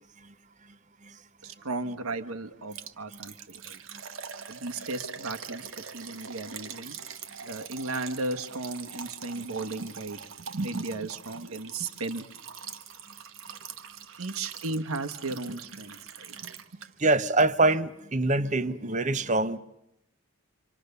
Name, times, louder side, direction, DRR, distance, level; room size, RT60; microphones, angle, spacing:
voice 1, 1.4-3.8 4.5-6.9 7.4-10.2 10.5-12.3 14.2-16.5, right 2 dB, 85° right, 1.4 m, -35 dB
Liquid, 2.7-17.1 17.4-17.5 18.0-18.1, right 7 dB, 65° right, 1.1 m, -43 dB
voice 2, 17.0-19.6, right 2 dB, 35° right, 0.9 m, -24 dB
27.0 x 26.5 x 6.9 m
head